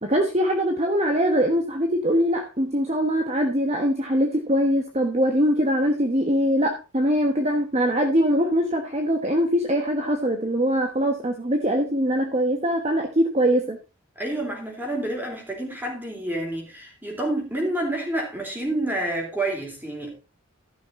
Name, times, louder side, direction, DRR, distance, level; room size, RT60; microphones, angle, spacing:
voice 1, 0.0-13.8, equal, 30° right, 1.2 m, -22 dB
voice 2, 14.2-20.2, right 1 dB, 10° right, 3.8 m, -28 dB
14.0 x 6.3 x 4.1 m
head